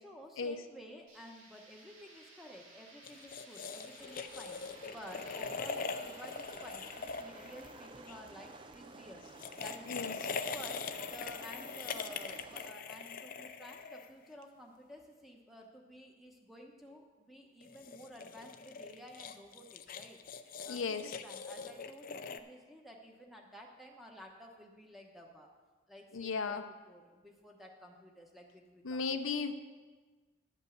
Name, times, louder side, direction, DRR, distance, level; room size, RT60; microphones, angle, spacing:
voice 1, 0.0-4.6 4.9-9.3 9.6-10.2 10.5-20.2 20.6-25.5 25.9-29.3, equal, ahead, 0 dB, 1.0 m, -52 dB
sound 1, 1.1-10.8, right 2 dB, 80° right, 2.2 m, -59 dB
sound 2, 3.0-8.2 9.2-14.4 17.6-22.4, left 5 dB, 40° left, 0.4 m, -42 dB
sound 3, 4.0-12.7, right 3 dB, 25° right, 0.4 m, -53 dB
voice 2, 20.7-21.2 26.1-26.6 28.8-29.5, left 5 dB, 80° left, 7 dB, 0.7 m, -35 dB
11.0 x 5.4 x 7.9 m, 1.3 s
head